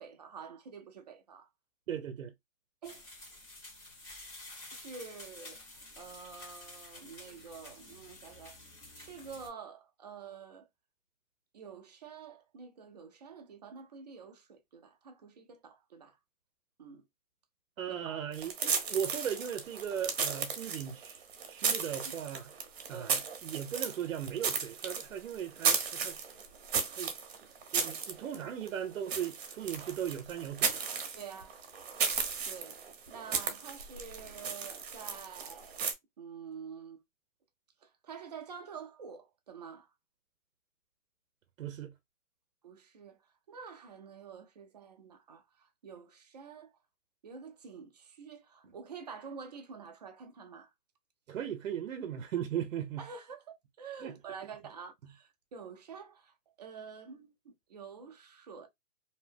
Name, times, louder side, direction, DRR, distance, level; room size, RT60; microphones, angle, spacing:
voice 1, 0.0-1.5 2.8-3.1 4.7-5.6 6.0-8.6 8.9-10.7 11.5-16.2 16.8-17.0 17.9-18.4 21.8-22.2 22.9-23.2 31.2-31.6 32.4-32.8 33.1-35.9 36.2-37.0 37.8-39.9 42.6-43.2 43.5-46.7 47.2-50.7 53.0-58.7, right 6 dB, 35° right, 0.4 m, -48 dB
voice 2, 1.9-2.3 17.8-22.5 22.9-26.2 26.9-27.1 27.7-30.9 41.6-41.9 51.3-53.1 54.0-54.1, right 9 dB, 80° right, 0.6 m, -37 dB
sound 1, 2.8-9.5, left 2 dB, 20° left, 1.1 m, -50 dB
sound 2, 18.3-35.9, right 6 dB, 50° right, 0.9 m, -35 dB
2.7 x 2.0 x 3.2 m
hypercardioid pair, 155°, 39 cm